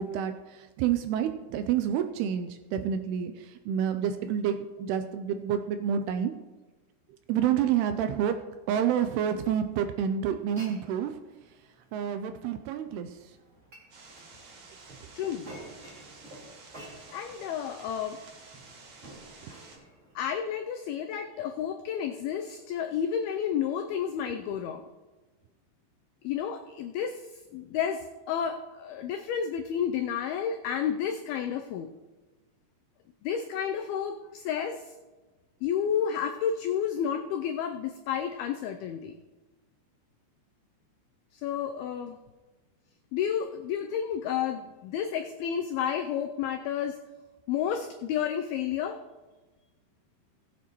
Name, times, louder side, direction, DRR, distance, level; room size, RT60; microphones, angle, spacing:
voice 1, 0.0-6.3 7.3-8.4 8.7-11.2 11.9-13.2, right 9 dB, 85° right, 8 dB, 2.4 m, -28 dB
Glass, 10.3-20.3, right 1 dB, 25° right, 1.9 m, -52 dB
sound 1, 13.9-19.8, right 3 dB, 55° right, 2.8 m, -51 dB
voice 2, 15.1-15.6 17.1-18.2 20.2-24.8 26.2-27.2 27.5-31.9 33.2-34.9 35.6-39.2 41.3-42.2 43.1-47.0 47.5-49.0, left 8 dB, 90° left, 6 dB, 2.1 m, -31 dB
19.0 x 8.3 x 3.0 m, 1.2 s
omnidirectional pair, 5.0 m